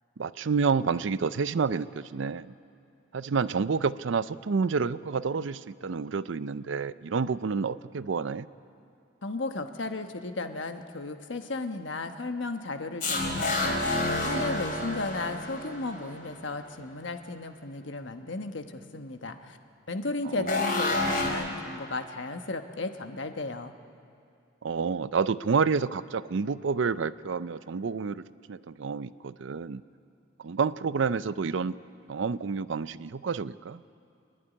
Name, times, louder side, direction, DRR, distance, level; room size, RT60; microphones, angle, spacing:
voice 1, 0.2-2.5 3.1-8.5 20.2-20.5 24.6-28.2 28.5-29.8 30.4-31.8 32.1-33.8, right 5 dB, 70° right, 16 dB, 0.5 m, -29 dB
voice 2, 9.2-19.6 19.9-23.7, left 2 dB, 70° left, 7 dB, 1.1 m, -35 dB
sound 1, 13.0-16.4 20.5-21.3, left 2 dB, 45° left, 3.5 m, -29 dB
26.5 x 11.0 x 10.0 m, 2.4 s
head